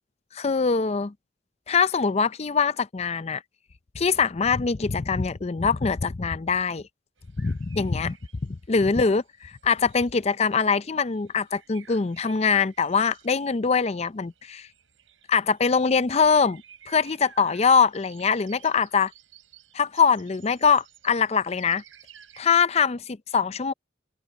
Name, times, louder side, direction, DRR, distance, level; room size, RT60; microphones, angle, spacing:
voice 1, 0.3-1.1 1.7-3.4 3.9-6.8 7.4-8.2 8.4-14.7 15.3-19.1 19.7-21.8 22.4-23.7, left 5 dB, 30° left, 0.5 m, -23 dB
sound 1, 7.2-22.4, right 9 dB, 85° right, 6.3 m, -55 dB
open air
head